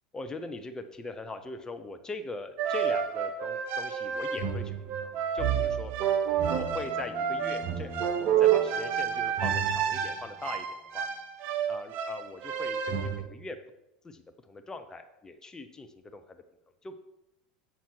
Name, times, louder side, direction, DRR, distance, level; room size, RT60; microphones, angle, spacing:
voice 1, 0.1-5.9 6.5-10.7 10.9-11.1 11.7-13.6 14.0-16.4 16.8-17.0, left 2 dB, 15° left, 8 dB, 0.7 m, -41 dB
sound 1, 2.6-13.2, right 8 dB, 50° right, 0.9 m, -29 dB
sound 2, 6.3-10.6, left 2 dB, 35° left, 1.8 m, -50 dB
7.3 x 5.8 x 4.6 m, 0.91 s
hypercardioid pair, 85°, 4 cm